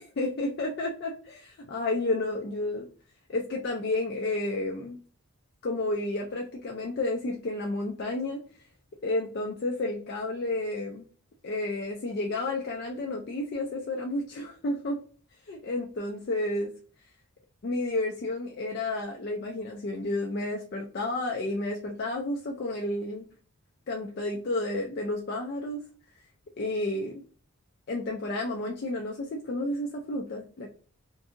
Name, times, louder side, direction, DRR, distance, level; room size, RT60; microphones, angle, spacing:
voice 1, 0.0-2.9 3.3-5.0 5.6-8.4 9.0-11.0 11.4-15.0 15.5-16.7 17.6-23.3 23.9-25.8 26.6-27.2 27.9-30.7, left 2 dB, 45° left, 0 dB, 0.4 m, -31 dB
2.6 x 2.6 x 2.4 m, 0.42 s
head